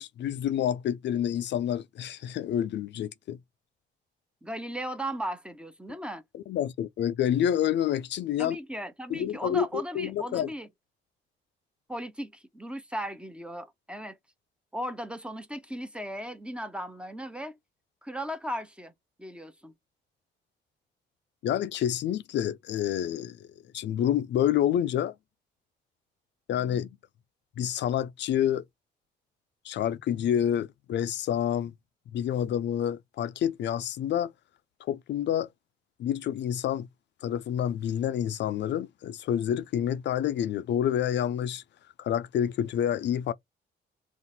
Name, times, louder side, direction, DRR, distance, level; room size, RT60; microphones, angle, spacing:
voice 1, 0.0-3.4 6.3-8.6 9.1-10.5 21.4-23.5 23.7-25.1 26.5-26.9 27.6-28.6 29.6-31.7 32.1-34.3 34.8-35.5 36.0-36.9 37.2-41.6 42.0-43.3, left 10 dB, 65° left, 0.4 m, -28 dB
voice 2, 4.4-6.2 8.4-10.7 11.9-14.2 14.7-17.5 18.0-18.9 19.2-19.7, equal, 5° right, 0.7 m, -36 dB
3.9 x 2.5 x 4.1 m
cardioid pair, 90°, 20 cm